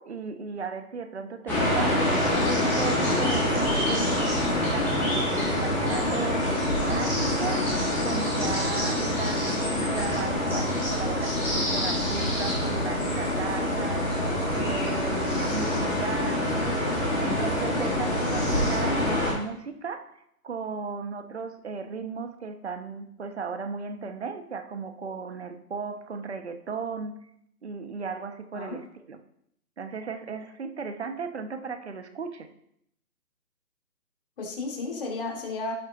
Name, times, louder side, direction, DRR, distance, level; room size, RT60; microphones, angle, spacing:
voice 1, 0.0-4.3 4.7-7.7 8.0-14.0 14.5-16.6 17.2-20.2 20.4-27.1 27.6-29.2 29.8-32.5, right 5 dB, 45° right, 7 dB, 1.2 m, -35 dB
sound 1, 1.5-19.3, left 1 dB, 5° left, 1.7 m, -26 dB
voice 2, 15.7-16.1 28.5-28.8 34.4-35.7, left 3 dB, 35° left, -1 dB, 2.8 m, -34 dB
16.0 x 7.3 x 2.6 m, 0.73 s
figure-of-eight pair, 160°, 46 cm